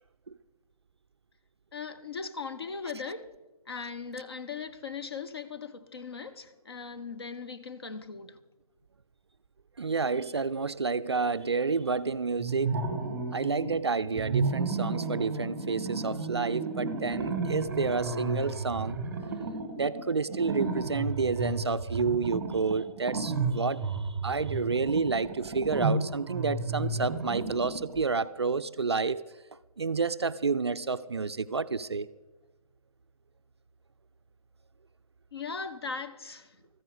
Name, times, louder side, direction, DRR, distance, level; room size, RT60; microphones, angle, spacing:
voice 1, 1.7-3.3 3.7-8.4 35.3-36.6, left 5 dB, 40° left, 0.8 m, -39 dB
voice 2, 9.8-12.8 13.3-19.0 19.8-29.2 29.8-32.1, right 4 dB, 45° right, 0.4 m, -30 dB
sound 1, 12.4-13.8 14.1-28.0, right 3 dB, 10° right, 1.1 m, -33 dB
14.0 x 9.0 x 6.7 m
figure-of-eight pair, 145°, 19 cm